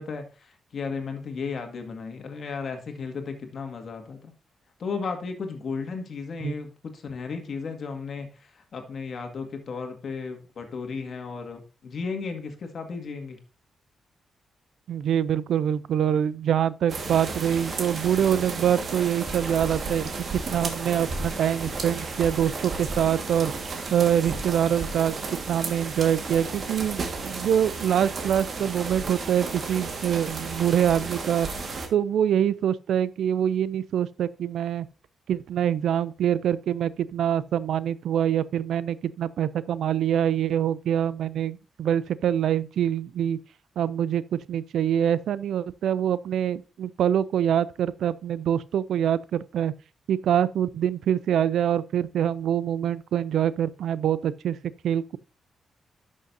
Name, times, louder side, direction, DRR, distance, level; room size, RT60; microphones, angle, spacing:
voice 1, 0.0-4.3 4.8-13.4, left 5 dB, 60° left, 1.9 m, -34 dB
voice 2, 14.9-23.5 23.9-25.2 25.5-31.5 31.9-34.9 35.3-43.4 43.8-49.7 50.1-54.6 54.8-55.2, right 9 dB, 80° right, 0.4 m, -25 dB
sound 1, 16.9-31.9, right 4 dB, 55° right, 1.6 m, -33 dB
11.0 x 6.4 x 2.7 m
cardioid pair, 80°, 0 cm